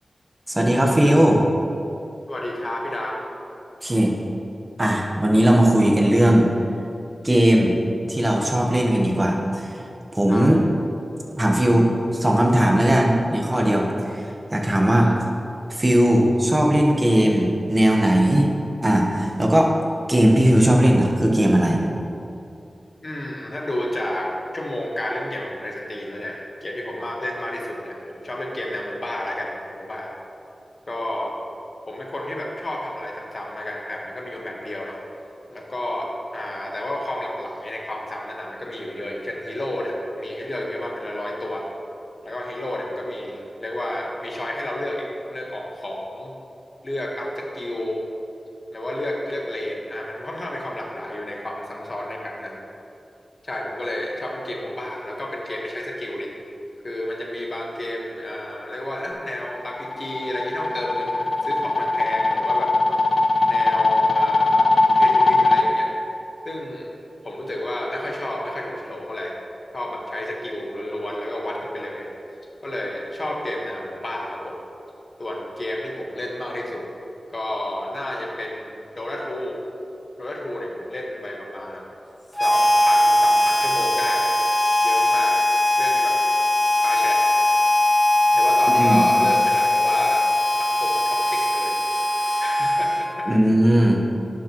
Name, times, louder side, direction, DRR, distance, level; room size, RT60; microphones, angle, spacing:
voice 1, 0.5-1.4 3.8-4.1 4.8-6.5 7.2-7.7 8.1-9.7 10.1-10.6 11.4-15.1 15.7-18.5 18.8-19.7 20.1-21.8 88.8-89.0 93.3-94.0, right 1 dB, 25° right, 0 dB, 1.1 m, -18 dB
voice 2, 2.3-3.3 10.3-10.7 14.9-15.1 23.0-30.1 30.9-31.3 31.9-35.0 35.5-41.7 42.2-46.3 46.8-48.0 48.7-52.6 53.4-56.3 56.8-62.7 63.5-64.7 65.0-65.9 66.4-66.9 67.2-69.4 69.7-72.1 72.6-74.6 75.2-76.8 77.3-79.6 80.2-81.8 82.4-84.3 84.8-85.4 85.8-86.2 86.8-87.2 88.3-90.3 90.6-91.8 92.4-93.3, left 1 dB, 45° left, -1 dB, 1.3 m, -31 dB
sound 1, 59.5-65.6, left 3 dB, 70° left, 0.5 m, -19 dB
Harmonica, 82.4-93.4, left 1 dB, 15° left, 0.4 m, -20 dB
11.0 x 6.2 x 3.0 m, 2.6 s
cardioid pair, 55°, 0 cm